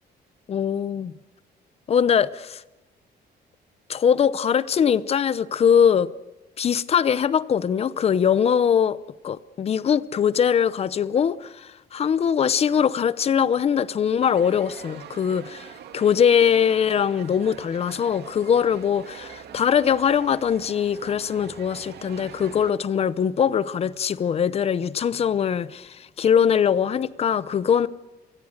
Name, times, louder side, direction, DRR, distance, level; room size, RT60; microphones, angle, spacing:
voice 1, 0.5-1.1 1.9-2.6 3.9-6.1 6.6-9.0 9.2-15.7 15.9-27.9, left 8 dB, 35° left, 0.7 m, -22 dB
sound 1, 14.2-22.7, right 9 dB, 65° right, 2.4 m, -43 dB
27.0 x 20.5 x 6.5 m
cardioid pair, 170°, 18 cm